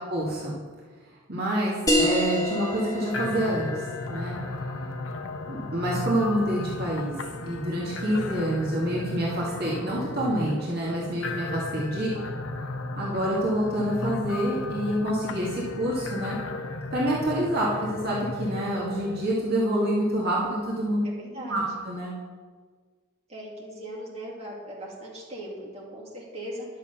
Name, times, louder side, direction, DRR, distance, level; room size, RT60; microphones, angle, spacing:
voice 1, 0.1-0.6 1.3-3.8 4.1-4.3 5.5-7.1 7.4-12.1 13.0-16.4 16.9-21.0 21.5-22.1, right 1 dB, 45° right, -5 dB, 2.2 m, -27 dB
sound 1, 1.9-6.9, equal, 15° left, 1.5 m, -29 dB
sound 2, 3.1-19.3, left 2 dB, 70° left, 0.7 m, -35 dB
voice 2, 12.0-12.3 21.2-21.6 23.3-26.7, right 1 dB, 30° right, -5 dB, 2.5 m, -39 dB
11.0 x 7.0 x 6.9 m, 1.5 s
head